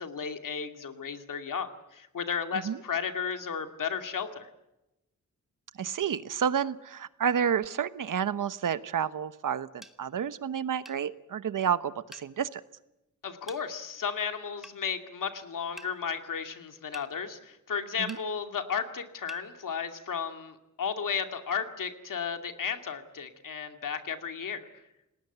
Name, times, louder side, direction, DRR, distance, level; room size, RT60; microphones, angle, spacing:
voice 1, 0.0-4.5 13.2-24.7, left 6 dB, 85° left, 6 dB, 2.4 m, -34 dB
voice 2, 5.8-12.6 18.0-18.2, right 8 dB, 85° right, 14 dB, 1.0 m, -30 dB
sound 1, 9.8-10.0 10.9-11.0 12.1-12.3 13.5-13.6 14.6-14.8 15.8-15.9 16.9-17.1 18.1-18.3 19.3-19.5, equal, ahead, 1.6 m, -46 dB
29.0 x 19.5 x 8.1 m, 0.92 s
wide cardioid pair, 125°, 31 cm